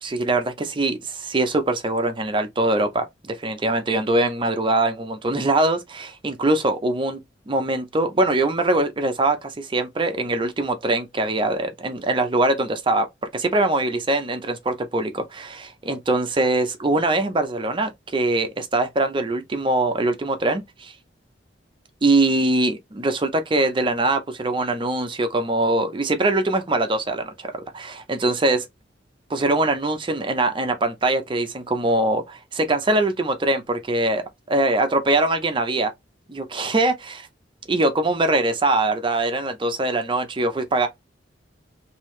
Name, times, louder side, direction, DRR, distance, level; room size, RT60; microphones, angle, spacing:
voice 1, 0.0-7.2 7.5-13.1 13.3-20.9 22.0-28.7 29.3-35.9 36.3-37.3 37.7-40.9, right 2 dB, 25° right, 0.5 m, -22 dB
3.3 x 2.7 x 3.1 m
head